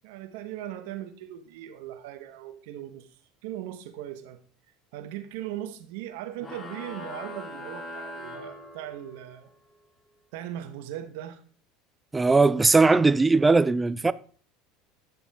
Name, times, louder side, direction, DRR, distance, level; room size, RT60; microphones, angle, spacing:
voice 1, 0.0-3.1 3.4-4.4 4.9-9.5 10.3-11.4, right 12 dB, 75° right, 1.1 m, -38 dB
sound 1, 6.4-9.3, left 2 dB, 25° left, 2.5 m, -41 dB
voice 2, 12.1-14.1, right 3 dB, 15° right, 0.5 m, -19 dB
9.6 x 7.1 x 3.5 m
supercardioid pair, 95°, 0 cm